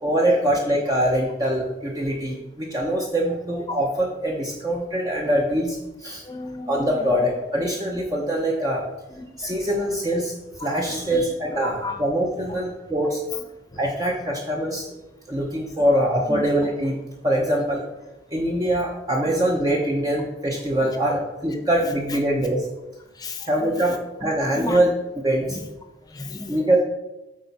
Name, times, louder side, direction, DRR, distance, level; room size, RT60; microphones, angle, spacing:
voice 1, 0.0-6.2 6.7-8.8 9.4-10.3 10.6-13.2 13.8-14.9 15.3-17.0 17.2-17.8 18.3-22.7 23.5-24.9 25.2-25.6 26.5-26.8, right 1 dB, 20° right, -1 dB, 0.7 m, -23 dB
voice 2, 6.2-7.1 7.9-8.0 8.2-8.3 9.1-9.8 10.8-12.0 12.4-12.6 13.3-13.4 13.7-13.9 16.3-16.4 20.8-21.2 21.8-22.2 23.1-24.0 24.5-24.8 25.5-25.7 26.0-26.8, left 3 dB, 20° left, 5 dB, 0.8 m, -36 dB
8.4 x 4.4 x 4.1 m, 0.99 s
head